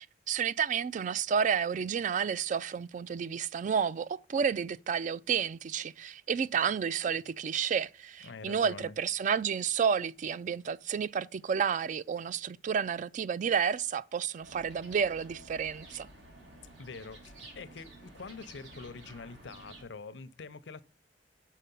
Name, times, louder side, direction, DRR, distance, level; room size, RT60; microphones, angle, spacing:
voice 1, 0.3-16.1, right 7 dB, 45° right, 0.3 m, -31 dB
voice 2, 8.2-8.9 16.8-20.8, left 4 dB, 80° left, 0.6 m, -45 dB
sound 1, 14.4-19.8, right 1 dB, 85° right, 2.6 m, -52 dB
7.3 x 5.6 x 5.4 m
head